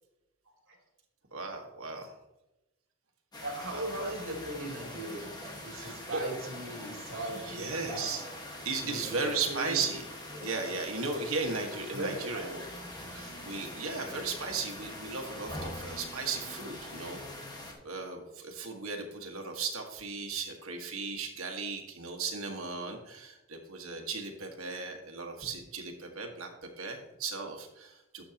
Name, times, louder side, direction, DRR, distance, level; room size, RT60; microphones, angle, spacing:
voice 1, 1.3-2.1 3.7-4.1 5.7-6.2 7.3-8.3 8.6-10.0 10.4-12.7 13.1-17.2 17.8-28.2, right 4 dB, 85° right, 3 dB, 1.7 m, -36 dB
sound 1, 3.3-17.7, left 1 dB, 20° left, 1.5 m, -43 dB
voice 2, 3.4-5.3 5.6-8.0 8.8-9.8 11.9-12.4, right 1 dB, 65° right, -1 dB, 3.2 m, -39 dB
12.0 x 7.4 x 2.9 m, 0.98 s
head